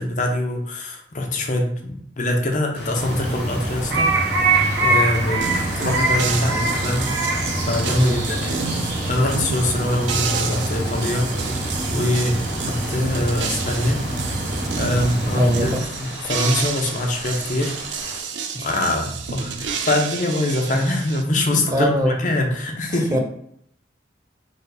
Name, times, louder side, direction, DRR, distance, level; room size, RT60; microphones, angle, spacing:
voice 1, 0.0-4.1 4.8-5.4 5.8-7.1 7.7-11.3 11.9-14.0 14.8-17.7 18.0-18.3 18.6-23.2, left 1 dB, 45° left, 1 dB, 0.7 m, -24 dB
sound 1, 2.7-18.2, left 2 dB, 65° left, 1.0 m, -38 dB
sound 2, 2.9-15.8, right 2 dB, 65° right, 1.2 m, -24 dB
sound 3, 5.4-21.2, right 6 dB, 80° right, 0.5 m, -30 dB
voice 2, 15.4-15.8 18.5-18.7 21.7-22.1 23.1-23.2, equal, 20° right, 3 dB, 0.5 m, -21 dB
3.9 x 2.2 x 3.9 m, 0.68 s
head